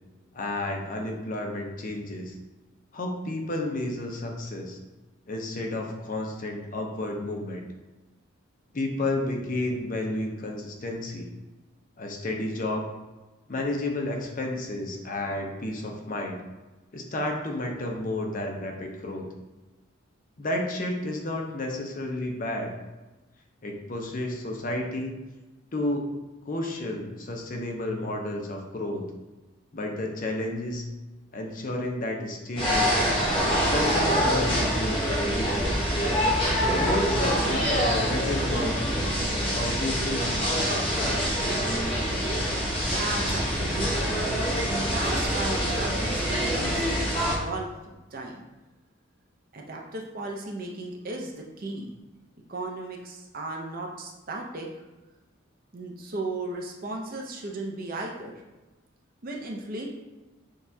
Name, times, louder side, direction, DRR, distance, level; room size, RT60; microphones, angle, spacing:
voice 1, 0.3-2.3 2.9-4.8 5.3-7.6 8.7-11.3 12.0-12.8 13.5-16.4 16.9-19.3 20.4-22.7 23.6-25.1 25.7-26.2 26.5-29.0 29.7-30.9 31.3-33.2 33.7-35.7 36.8-38.9 39.5-41.2, left 1 dB, 40° left, 1 dB, 0.6 m, -31 dB
sound 1, 32.6-47.4, equal, 25° left, 1.0 m, -25 dB
voice 2, 42.9-47.7 48.1-48.4 49.5-51.9 52.5-54.7 55.7-58.3 59.2-59.9, right 2 dB, 45° right, 0 dB, 0.6 m, -35 dB
6.3 x 2.3 x 2.7 m, 1.1 s
head